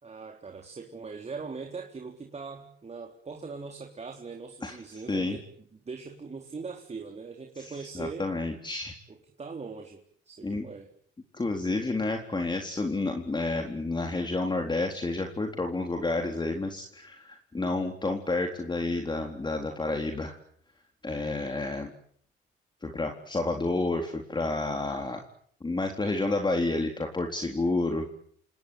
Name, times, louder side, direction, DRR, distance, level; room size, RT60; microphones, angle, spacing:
voice 1, 0.0-8.3 9.1-10.0 10.3-10.9, right 4 dB, 35° right, 2 dB, 3.9 m, -41 dB
voice 2, 4.6-5.4 7.6-9.0 10.4-10.7 11.3-20.4 21.0-21.9 22.8-25.2 25.6-28.1, left 2 dB, 20° left, 4 dB, 4.0 m, -30 dB
28.5 x 19.5 x 9.5 m, 0.62 s
cardioid pair, 90°, 20 cm